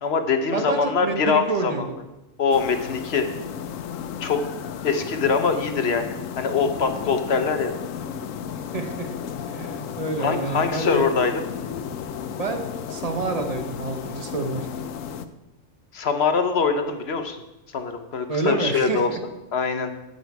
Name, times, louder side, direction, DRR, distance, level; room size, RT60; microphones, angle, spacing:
voice 1, 0.0-1.9 2.4-3.3 4.2-4.4 4.8-7.7 10.2-11.4 15.9-17.4 17.7-19.1 19.5-19.9, left 5 dB, 60° left, 7 dB, 1.0 m, -23 dB
voice 2, 0.5-1.8 8.7-9.1 9.5-11.1 12.4-14.7 18.3-19.2, right 3 dB, 35° right, 6 dB, 0.9 m, -28 dB
sound 1, 2.5-15.3, left 8 dB, 85° left, 1.0 m, -33 dB
12.0 x 5.2 x 4.6 m, 0.96 s
omnidirectional pair, 1.3 m